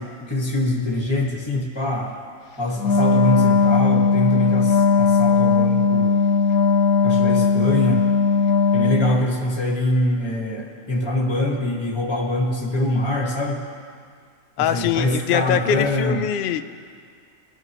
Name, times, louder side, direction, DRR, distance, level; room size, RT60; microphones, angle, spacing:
voice 1, 0.0-2.1 2.6-6.1 7.0-8.0 8.7-13.6 14.6-16.2, left 1 dB, 20° left, -2 dB, 1.7 m, -24 dB
Wind instrument woodwind instrument, 2.8-9.3, left 4 dB, 85° left, 1.1 m, -18 dB
voice 2, 14.6-16.6, left 9 dB, 70° left, 9 dB, 0.5 m, -22 dB
21.0 x 10.5 x 3.1 m, 2.1 s
omnidirectional pair, 1.5 m